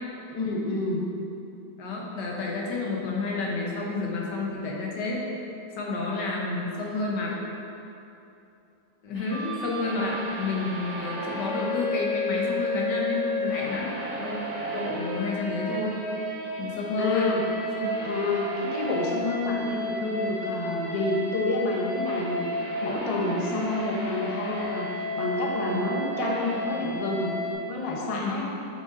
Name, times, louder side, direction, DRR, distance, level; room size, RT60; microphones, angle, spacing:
voice 1, 0.3-1.1 17.0-17.4 18.0-27.4 27.7-28.5, left 2 dB, 60° left, -2 dB, 0.3 m, -28 dB
voice 2, 1.8-5.2 5.8-7.4 9.0-14.4 14.7-16.0 16.6-17.3 17.7-17.9 25.7-25.9 28.1-28.4, left 3 dB, 90° left, -2 dB, 1.6 m, -30 dB
sound 1, 9.1-27.5, left 1 dB, 15° left, 1.1 m, -32 dB
7.6 x 4.0 x 3.7 m, 2.8 s
omnidirectional pair, 1.8 m